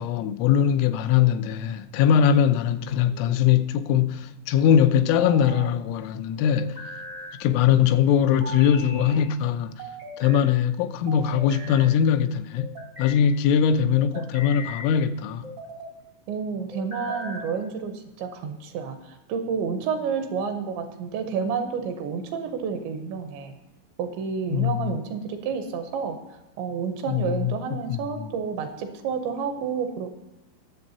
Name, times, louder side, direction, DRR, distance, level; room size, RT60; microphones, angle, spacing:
voice 1, 0.0-6.7 7.4-9.7 10.2-12.7 13.0-15.4 24.5-24.8 27.1-27.5 27.9-28.3, left 8 dB, 90° left, 3.2 m, -21 dB
sound 1, 2.9-3.6 4.9-5.7 6.6-7.4 8.4-9.2 9.8-10.5 11.1-11.9 12.6-13.2 13.9-14.9 15.4-16.0 16.7-17.5, equal, 60° right, 0.7 m, -39 dB
voice 2, 16.3-23.5 24.0-26.2 26.6-30.1, right 6 dB, 80° right, 2.9 m, -30 dB
21.0 x 7.3 x 2.8 m
omnidirectional pair, 5.5 m